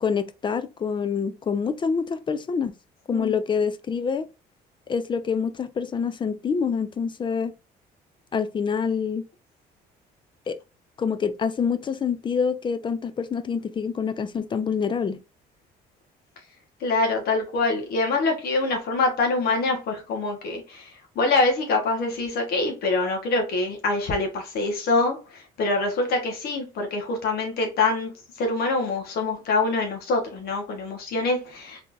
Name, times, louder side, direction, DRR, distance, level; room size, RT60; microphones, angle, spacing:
voice 1, 0.0-2.7 3.1-4.3 4.9-7.5 8.3-9.2 10.5-10.6 11.0-15.2, left 6 dB, 30° left, 0.4 m, -26 dB
voice 2, 16.8-28.1 28.4-31.8, left 3 dB, 65° left, 1.2 m, -25 dB
3.6 x 3.3 x 2.5 m
cardioid pair, 110°, 17 cm